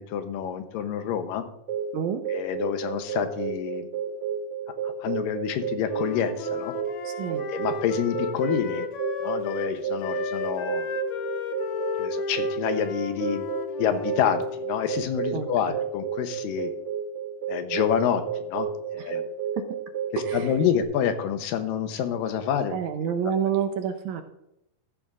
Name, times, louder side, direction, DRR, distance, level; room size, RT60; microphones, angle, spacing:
voice 1, 0.0-1.5 2.3-3.9 4.8-6.7 7.5-8.9 9.2-10.9 12.0-13.5 13.8-16.7 17.5-19.2 20.1-22.8 23.0-23.1, left 8 dB, 90° left, 8 dB, 2.5 m, -28 dB
sound 1, 1.7-20.8, right 5 dB, 35° right, 3.3 m, -32 dB
Wind instrument woodwind instrument, 5.8-9.7 10.0-14.3, left 5 dB, 75° left, 1.3 m, -35 dB
voice 2, 7.0-7.4 15.3-15.8 19.1-19.2 19.6-19.7 20.2-20.5 22.7-24.2, right 8 dB, 75° right, 6 dB, 1.9 m, -28 dB
13.5 x 12.0 x 2.5 m, 0.85 s
omnidirectional pair, 3.8 m